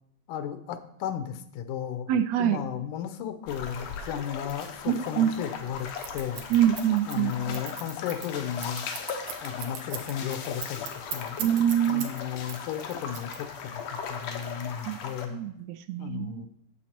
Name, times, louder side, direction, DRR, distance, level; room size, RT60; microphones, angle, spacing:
voice 1, 0.3-2.1 2.4-5.9 6.1-6.4 7.1-8.9 9.4-11.4 11.9-15.4 16.0-16.5, left 9 dB, 85° left, 10 dB, 2.3 m, -34 dB
voice 2, 2.1-2.6 4.9-5.3 6.5-7.6 11.4-12.1 14.8-15.0 15.3-16.4, right 10 dB, 90° right, 9 dB, 1.5 m, -25 dB
sound 1, 3.5-15.3, left 6 dB, 65° left, 1.9 m, -38 dB
Scissors, 6.0-12.2 12.5-13.8, right 9 dB, 70° right, 2.1 m, -38 dB
9.0 x 7.2 x 4.4 m, 0.70 s
omnidirectional pair, 3.5 m